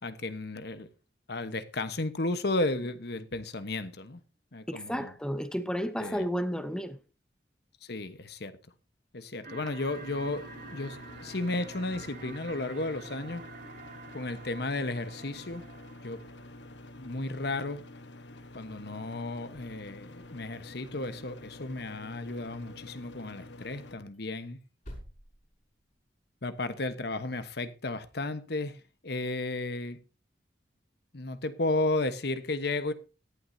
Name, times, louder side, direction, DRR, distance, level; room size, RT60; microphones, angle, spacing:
voice 1, 0.0-0.9 1.3-4.2 4.5-5.1 6.0-6.2 7.8-8.6 9.1-13.4 14.1-15.6 16.0-16.2 17.0-17.8 18.5-24.6 26.4-30.0 31.1-32.9, left 2 dB, 65° left, 1.2 m, -33 dB
voice 2, 4.7-7.0, equal, 5° left, 0.8 m, -32 dB
sound 1, 9.4-16.6, right 4 dB, 55° right, 1.1 m, -48 dB
microwave loop, 9.9-24.0, left 1 dB, 90° left, 1.2 m, -48 dB
sound 2, 20.1-20.6 20.9-22.1 22.3-22.4 22.8-23.0 23.2-23.3 23.7-26.3, equal, 45° left, 5.7 m, -52 dB
18.0 x 11.5 x 2.8 m
head